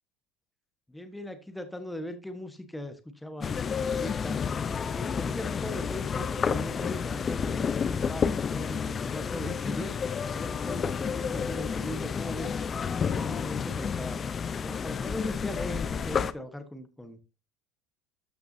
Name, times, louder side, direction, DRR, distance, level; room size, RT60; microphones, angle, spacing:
voice 1, 0.9-4.4 4.8-7.6 7.9-8.2 8.5-12.6 13.0-14.2 14.6-17.4, left 1 dB, 5° left, 8 dB, 1.2 m, -40 dB
sound 1, 3.4-16.3, left 6 dB, 25° left, 0.6 m, -30 dB
13.0 x 5.9 x 2.7 m, 0.29 s
supercardioid pair, 130°, 0 cm